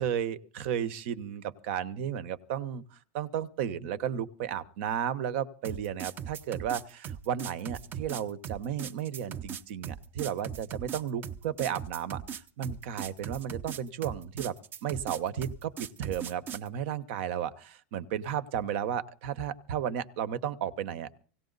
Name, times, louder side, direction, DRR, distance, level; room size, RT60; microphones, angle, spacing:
voice 1, 0.0-14.5 14.8-21.2, right 9 dB, 65° right, 13 dB, 1.1 m, -33 dB
sound 1, 5.6-16.7, right 8 dB, 30° right, 0.8 m, -39 dB
18.0 x 17.0 x 4.0 m, 0.40 s
supercardioid pair, 145°, 7 cm